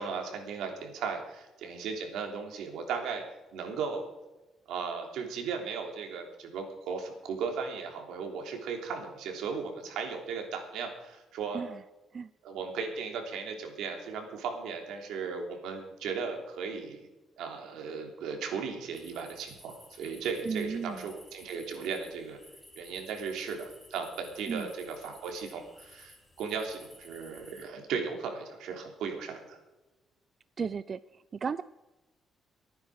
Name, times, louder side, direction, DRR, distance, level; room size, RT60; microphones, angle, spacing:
voice 1, 0.0-3.2 3.5-4.1 4.7-11.6 12.4-17.1 17.4-22.4 22.8-29.6, right 5 dB, 85° right, 3 dB, 3.2 m, -36 dB
sound 1, 18.9-27.7, left 1 dB, 10° left, 3.6 m, -55 dB
voice 2, 20.5-21.1 24.5-24.7 30.6-31.6, right 6 dB, 45° right, 15 dB, 0.4 m, -35 dB
23.5 x 9.6 x 4.9 m, 1.1 s
cardioid pair, 90°, 0 cm